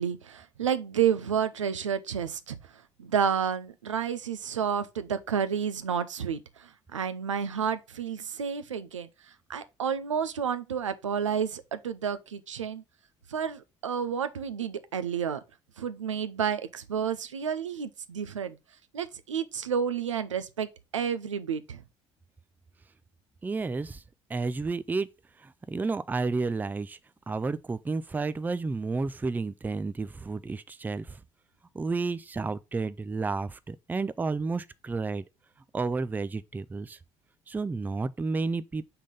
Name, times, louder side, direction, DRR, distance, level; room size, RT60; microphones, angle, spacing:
voice 1, 0.0-2.6 3.0-9.1 9.5-12.8 13.3-15.4 15.8-18.6 18.9-21.8, right 7 dB, 80° right, 0.5 m, -30 dB
voice 2, 23.4-24.0 24.3-25.1 25.4-27.0 27.3-31.2 31.7-35.2 35.7-37.0 37.5-38.9, right 3 dB, 10° right, 0.4 m, -31 dB
5.6 x 3.7 x 5.1 m
figure-of-eight pair, 55°, 16 cm